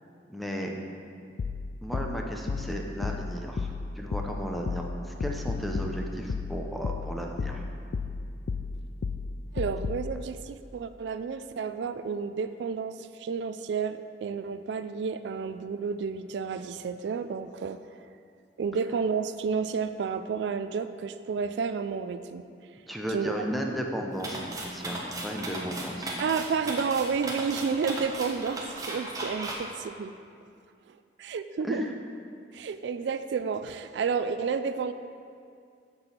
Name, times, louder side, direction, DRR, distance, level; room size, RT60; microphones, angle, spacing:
voice 1, 0.3-0.7 1.8-7.6 22.9-26.2 31.6-31.9, equal, ahead, 1 dB, 0.7 m, -34 dB
sound 1, 1.4-10.1, left 4 dB, 60° left, 0.3 m, -33 dB
voice 2, 9.5-17.8 18.6-22.5 23.1-23.3 26.2-30.1 30.9-31.8 32.5-34.9, right 5 dB, 75° right, 10 dB, 0.3 m, -31 dB
sound 2, 24.2-29.5, right 2 dB, 20° right, 1.1 m, -36 dB
7.0 x 6.8 x 5.8 m, 2.4 s
head